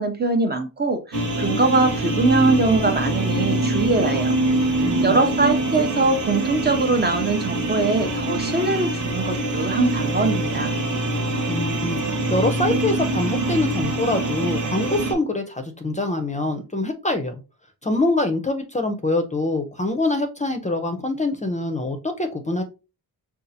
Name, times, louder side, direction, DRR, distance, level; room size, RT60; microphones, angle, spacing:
voice 1, 0.0-4.4 5.0-10.7, right 3 dB, 25° right, 0.6 m, -22 dB
sound 1, 1.1-15.1, right 1 dB, 50° right, 1.1 m, -24 dB
voice 2, 4.8-5.2 5.8-5.9 11.5-17.4 17.8-22.6, left 2 dB, 20° left, 0.5 m, -25 dB
5.3 x 2.4 x 2.7 m
wide cardioid pair, 125°, 38 cm